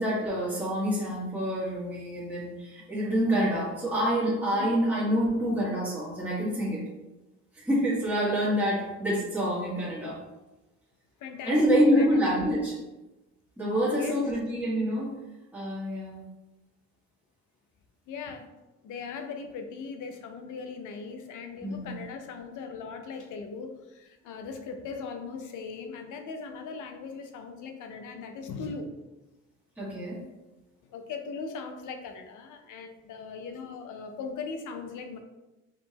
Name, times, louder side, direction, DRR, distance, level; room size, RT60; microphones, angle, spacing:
voice 1, 0.0-6.8 7.5-10.2 11.4-12.8 13.6-15.1 15.5-16.2 21.6-22.0 29.8-30.2, equal, 5° right, -8 dB, 1.5 m, -27 dB
voice 2, 11.2-12.1 13.9-14.2 18.1-18.5 18.8-28.9 30.8-35.2, left 5 dB, 80° left, 6 dB, 0.6 m, -39 dB
4.9 x 2.8 x 2.8 m, 1.0 s
cardioid pair, 90°, 30 cm